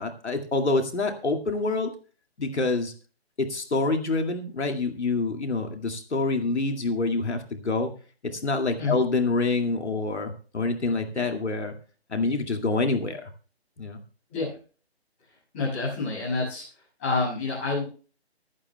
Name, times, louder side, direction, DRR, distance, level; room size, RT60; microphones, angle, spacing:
voice 1, 0.0-1.9 2.4-2.9 3.4-7.9 8.2-11.7 12.1-13.3 13.8-14.0, left 3 dB, 90° left, 4 dB, 2.2 m, -26 dB
voice 2, 15.5-16.6 17.0-17.8, left 3 dB, 10° left, -7 dB, 6.7 m, -27 dB
25.5 x 8.9 x 2.2 m, 0.37 s
hypercardioid pair, 180°, 33 cm